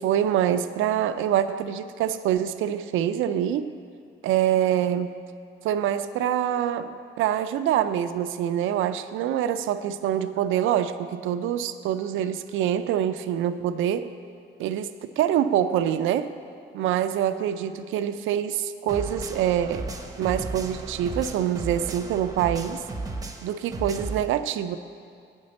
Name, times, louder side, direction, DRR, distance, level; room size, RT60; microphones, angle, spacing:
voice 1, 0.0-3.7 4.2-5.1 5.6-14.1 14.6-16.3 16.7-19.9 20.2-22.8 23.4-24.8, right 10 dB, 85° right, 12 dB, 0.4 m, -25 dB
sound 1, 18.9-24.2, right 3 dB, 20° right, 0.7 m, -35 dB
7.9 x 5.3 x 7.6 m, 2.3 s
cardioid pair, 90°, 20 cm